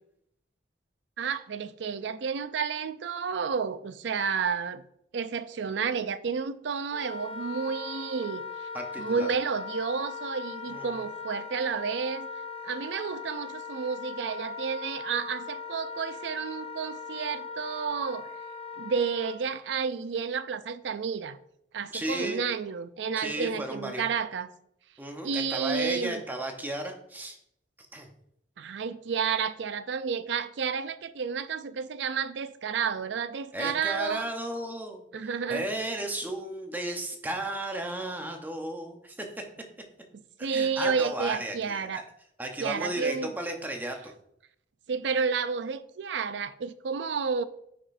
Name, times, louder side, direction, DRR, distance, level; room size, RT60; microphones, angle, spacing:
voice 1, 1.2-4.8 5.1-8.4 9.0-12.3 12.6-18.3 18.8-21.4 21.7-24.5 25.2-26.2 28.6-34.3 35.1-35.6 40.4-42.0 42.6-43.3 44.9-47.4, right 6 dB, 75° right, 0.4 m, -31 dB
Wind instrument woodwind instrument, 6.9-19.4, left 5 dB, 35° left, 0.5 m, -39 dB
voice 2, 8.7-9.3 10.7-11.0 21.9-22.4 23.2-24.0 25.0-27.4 27.9-28.1 33.5-35.0 35.5-39.3 40.4-42.0 42.4-44.0, right 1 dB, 10° right, 0.8 m, -34 dB
9.8 x 5.0 x 2.6 m
head